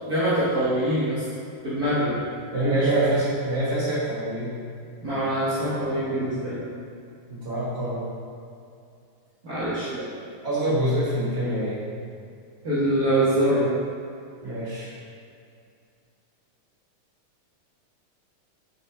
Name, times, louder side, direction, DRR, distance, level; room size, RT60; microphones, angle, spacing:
voice 1, 0.1-1.2 1.6-2.2 5.0-6.6 9.4-10.0 12.6-13.7, right 1 dB, 80° right, -12 dB, 0.8 m, -24 dB
voice 2, 2.5-4.6 7.3-8.1 10.4-11.8 14.4-14.9, right 1 dB, 35° right, -9 dB, 1.1 m, -25 dB
5.3 x 4.3 x 4.3 m, 2.4 s
omnidirectional pair, 3.6 m